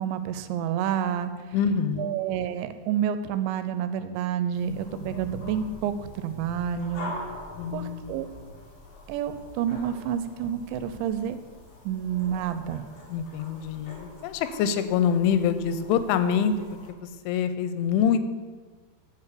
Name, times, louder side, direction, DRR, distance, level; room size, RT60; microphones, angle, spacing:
voice 1, 0.0-1.3 2.0-7.2 7.7-8.3 9.1-11.4 11.8-12.8, right 9 dB, 85° right, 11 dB, 2.8 m, -29 dB
voice 2, 1.5-2.1 7.6-8.1 13.1-16.5 16.9-18.2, left 7 dB, 90° left, 11 dB, 3.1 m, -25 dB
sound 1, 4.5-16.9, left 1 dB, 45° left, 3.7 m, -43 dB
10.5 x 5.1 x 8.3 m, 1.4 s
omnidirectional pair, 5.4 m